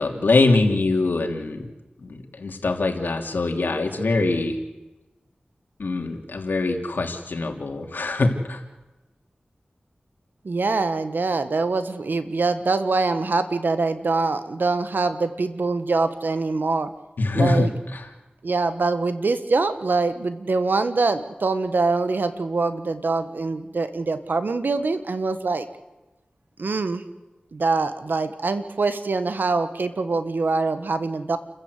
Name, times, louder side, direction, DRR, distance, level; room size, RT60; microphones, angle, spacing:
voice 1, 0.0-1.7 2.0-4.6 5.8-8.6 17.2-18.1, left 3 dB, 85° left, 3 dB, 3.0 m, -23 dB
voice 2, 10.4-16.9 17.3-17.7 18.4-25.7 26.6-27.0 27.5-31.4, right 3 dB, 80° right, 11 dB, 1.6 m, -24 dB
29.5 x 14.5 x 8.2 m, 1.1 s
wide cardioid pair, 50°, 3 cm